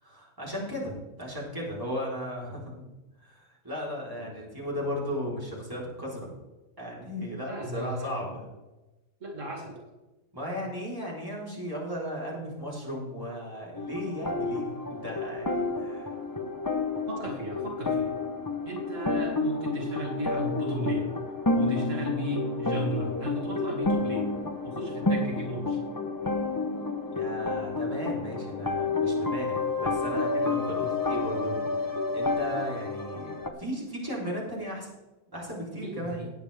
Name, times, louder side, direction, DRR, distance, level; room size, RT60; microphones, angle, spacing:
voice 1, 0.0-2.9 3.2-6.3 6.8-8.4 10.3-16.1 27.1-34.9 35.3-36.2, equal, 15° right, -5 dB, 3.7 m, -36 dB
voice 2, 7.5-8.2 9.2-9.8 17.1-18.2 18.6-21.1 21.5-24.3 24.6-25.8 35.8-36.3, right 1 dB, 75° right, -1 dB, 2.5 m, -35 dB
sound 1, 13.7-33.5, left 3 dB, 20° left, 0.8 m, -30 dB
18.5 x 8.8 x 3.4 m, 1.1 s
omnidirectional pair, 1.3 m